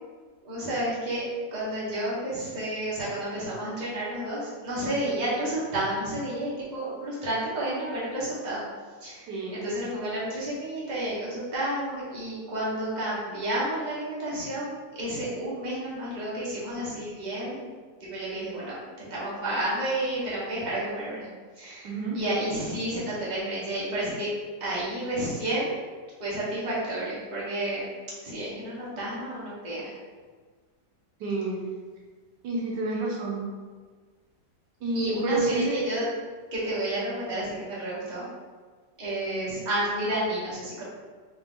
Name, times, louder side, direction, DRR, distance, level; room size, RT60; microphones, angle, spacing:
voice 1, 0.4-8.6 9.0-17.7 18.0-21.3 21.5-24.3 24.6-25.8 26.2-27.9 28.2-29.9 34.9-36.1 36.5-38.3 39.0-40.8, right 1 dB, 30° right, -8 dB, 1.2 m, -31 dB
voice 2, 9.3-9.7 21.8-22.2 31.2-31.6 32.4-33.4 34.8-35.8, right 2 dB, 80° right, -3 dB, 1.4 m, -29 dB
3.9 x 2.7 x 3.7 m, 1.5 s
omnidirectional pair, 1.9 m